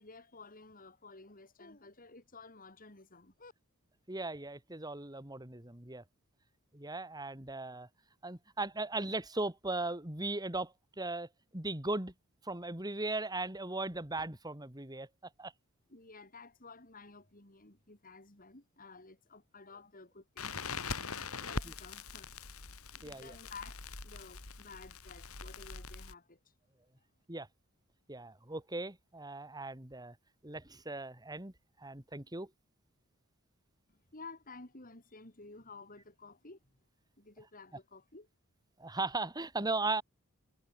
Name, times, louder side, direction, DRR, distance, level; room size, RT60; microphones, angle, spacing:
voice 1, 0.0-3.5 15.9-21.0 21.4-22.3 22.9-26.4 33.9-36.7 37.2-38.3, left 3 dB, 40° left, 4.1 m, -53 dB
voice 2, 4.1-6.0 6.7-7.9 8.2-12.1 12.4-15.1 15.4-15.5 21.4-21.7 23.0-23.4 27.3-27.5 28.1-30.2 30.4-31.5 31.8-32.5 38.8-40.0, right 2 dB, 20° right, 2.7 m, -38 dB
Crackle, 20.4-26.1, left 4 dB, 80° left, 3.5 m, -42 dB
head